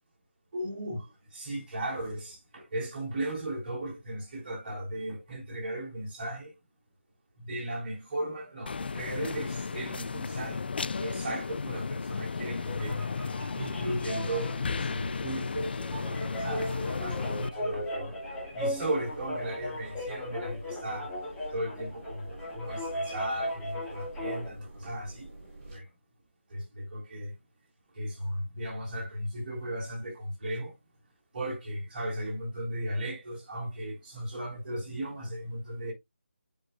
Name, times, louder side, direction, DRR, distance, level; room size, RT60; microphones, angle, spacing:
voice 1, 0.5-6.5 7.4-10.6 11.0-13.0 13.6-18.1 18.5-21.2 21.5-25.3 25.7-25.8 26.5-27.3 28.0-30.7 31.3-35.9, right 1 dB, 40° right, 5.4 m, -36 dB
sound 1, 8.7-17.5, left 5 dB, 55° left, 0.3 m, -34 dB
sound 2, 12.4-24.5, left 1 dB, 10° left, 1.9 m, -38 dB
sound 3, 12.4-25.8, right 2 dB, 25° right, 3.2 m, -48 dB
10.5 x 4.6 x 2.4 m
figure-of-eight pair, 165°, 7 cm